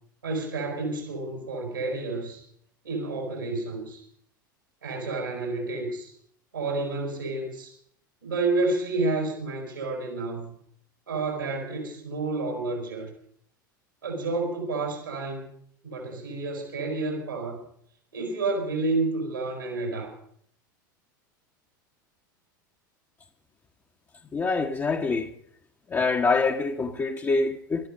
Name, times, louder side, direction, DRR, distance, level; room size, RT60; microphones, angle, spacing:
voice 1, 0.2-2.4 2.8-4.0 4.8-6.1 6.5-7.7 8.2-10.5 11.1-13.1 14.0-15.5 15.8-17.6 18.1-20.2, right 3 dB, 85° right, 5.5 m, -30 dB
voice 2, 24.3-25.3 25.9-27.9, left 4 dB, 20° left, 1.2 m, -25 dB
21.5 x 12.5 x 5.4 m
figure-of-eight pair, 85°, 11 cm